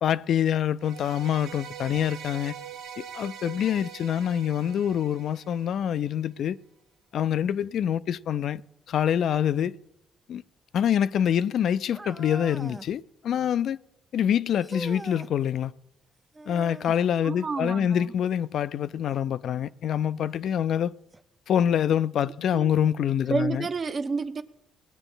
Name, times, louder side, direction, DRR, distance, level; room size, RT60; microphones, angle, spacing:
voice 1, 0.0-2.6 3.0-6.6 7.1-8.6 8.9-9.7 10.3-10.4 10.7-13.8 14.1-15.7 16.5-20.9 21.5-23.6, left 9 dB, 70° left, 0.4 m, -25 dB
sound 1, 0.8-6.0, right 8 dB, 90° right, 1.2 m, -43 dB
sound 2, 11.9-13.0 14.6-15.3 16.3-17.0 19.1-19.2 20.1-20.2 21.1-21.2, right 2 dB, 20° right, 0.5 m, -41 dB
voice 2, 17.2-18.1 22.5-22.8 23.3-24.4, right 4 dB, 45° right, 0.9 m, -30 dB
19.0 x 8.9 x 3.9 m
cardioid pair, 90°, 0 cm